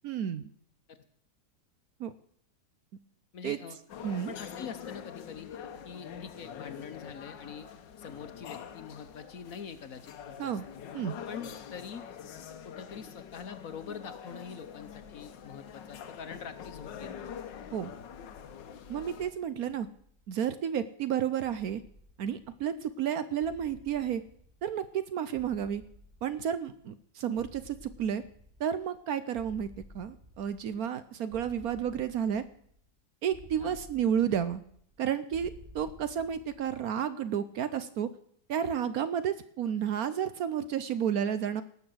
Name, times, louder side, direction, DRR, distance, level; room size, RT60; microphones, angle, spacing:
voice 1, 0.0-0.4 2.0-2.1 3.4-3.6 4.0-4.3 10.4-10.6 10.9-11.2 17.7-17.9 18.9-19.9 20.3-21.8 22.2-24.2 24.6-25.8 26.2-28.2 28.6-29.7 29.9-32.4 33.2-34.6 35.0-38.1 38.5-41.6, right 9 dB, 65° right, 13 dB, 1.1 m, -31 dB
voice 2, 3.3-3.8 4.3-5.5 5.8-7.7 8.0-10.6 11.3-12.1 12.6-17.3 33.6-33.8, left 6 dB, 55° left, 10 dB, 1.2 m, -44 dB
sound 1, 3.9-19.3, left 8 dB, 90° left, 1.7 m, -45 dB
sound 2, 19.4-20.7 21.4-22.9 23.4-25.0 25.3-26.9 27.3-29.0 29.3-31.0 31.3-32.9 33.3-35.0 35.3-36.9, left 1 dB, 35° right, 6.0 m, -54 dB
18.5 x 6.6 x 7.8 m, 0.64 s
omnidirectional pair, 1.9 m